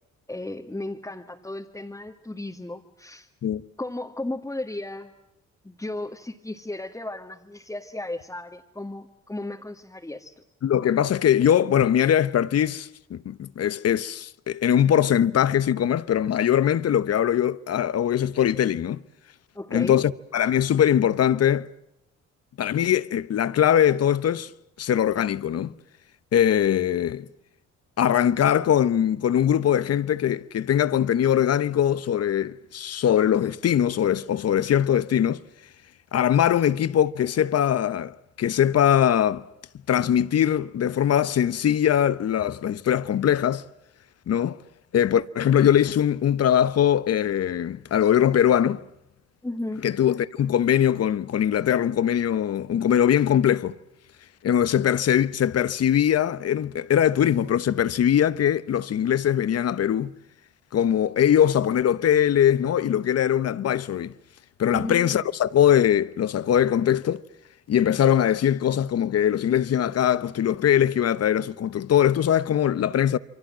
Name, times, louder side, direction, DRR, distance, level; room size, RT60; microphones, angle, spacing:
voice 1, 0.3-3.3 3.8-5.1 5.6-10.3 19.5-20.0 49.4-49.9 64.7-65.2, left 2 dB, 10° left, 1.7 m, -34 dB
voice 2, 10.6-19.0 19.7-21.7 22.6-24.5 24.8-25.7 26.3-27.3 28.0-35.4 36.1-39.5 39.9-43.6 44.3-44.6 44.9-48.8 49.8-53.8 54.4-60.1 60.7-64.1 64.6-67.2 67.7-73.2, left 10 dB, 55° left, 1.0 m, -21 dB
28.5 x 24.0 x 7.4 m
cardioid pair, 90°, 30 cm